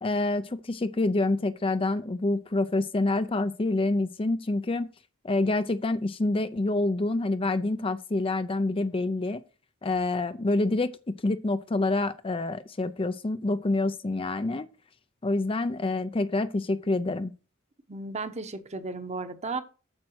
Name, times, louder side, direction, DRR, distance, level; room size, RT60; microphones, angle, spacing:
voice 1, 0.0-4.9 5.2-9.4 9.8-10.9 11.2-14.7 15.2-17.3, left 2 dB, 25° left, 0.5 m, -27 dB
voice 2, 17.9-19.6, right 3 dB, 30° right, 1.1 m, -34 dB
8.8 x 7.5 x 4.6 m
head